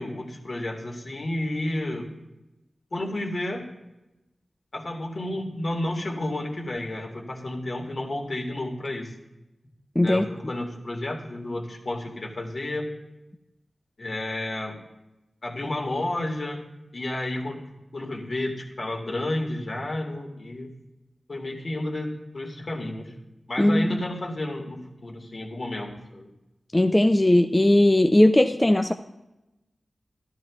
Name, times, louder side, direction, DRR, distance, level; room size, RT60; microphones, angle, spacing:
voice 1, 0.0-2.1 2.9-3.7 4.7-9.1 10.0-12.9 14.0-14.8 15.4-16.7 16.9-17.7 17.9-20.7 21.3-23.1 23.5-26.3, left 1 dB, 60° left, 0 dB, 1.7 m, -31 dB
voice 2, 10.0-10.3 23.6-23.9 26.7-28.9, left 1 dB, 20° left, 6 dB, 0.4 m, -18 dB
13.0 x 12.5 x 2.3 m, 0.97 s
wide cardioid pair, 65°, 0 cm